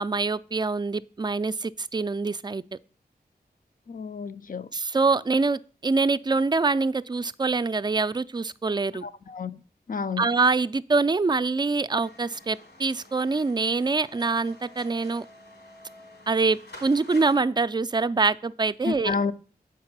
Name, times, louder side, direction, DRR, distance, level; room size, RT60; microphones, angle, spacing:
voice 1, 0.0-2.6 4.7-9.0 10.2-15.2 16.3-19.1, right 4 dB, 25° right, 0.4 m, -25 dB
voice 2, 3.9-4.7 9.0-9.5 9.9-10.3 18.8-19.3, left 5 dB, 55° left, 0.5 m, -30 dB
sound 1, 12.0-17.3, left 1 dB, 85° left, 3.1 m, -49 dB
7.7 x 4.8 x 5.9 m
wide cardioid pair, 65°, 17 cm